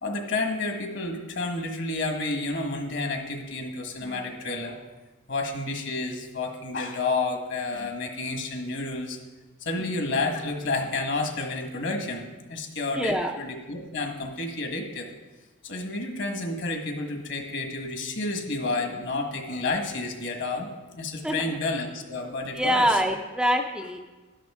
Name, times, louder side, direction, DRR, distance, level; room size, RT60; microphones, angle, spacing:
voice 1, 0.0-4.8 5.3-9.2 9.6-15.1 15.6-23.0, left 3 dB, 60° left, 3 dB, 1.6 m, -30 dB
voice 2, 13.0-13.3 21.2-21.6 22.5-24.0, equal, 5° right, 2 dB, 0.5 m, -25 dB
12.0 x 11.0 x 3.7 m, 1.2 s
head